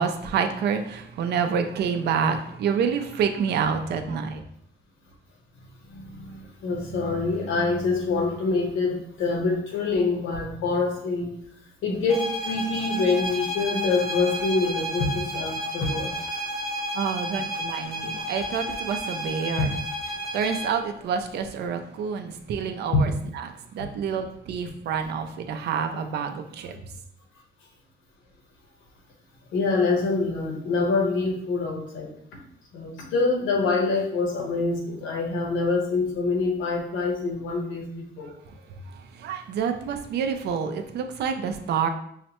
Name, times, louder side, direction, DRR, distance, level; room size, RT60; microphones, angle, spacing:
voice 1, 0.0-4.4 16.9-19.7 20.3-26.8 38.9-41.9, right 6 dB, 60° right, 6 dB, 0.4 m, -28 dB
voice 2, 5.9-11.3 11.8-16.1 19.6-19.7 22.9-23.0 29.5-32.1 32.7-38.3, left 3 dB, 80° left, 0 dB, 1.0 m, -25 dB
sound 1, 12.1-20.8, equal, ahead, 0.6 m, -32 dB
5.6 x 2.1 x 2.9 m, 0.70 s
cardioid pair, 180°, 20 cm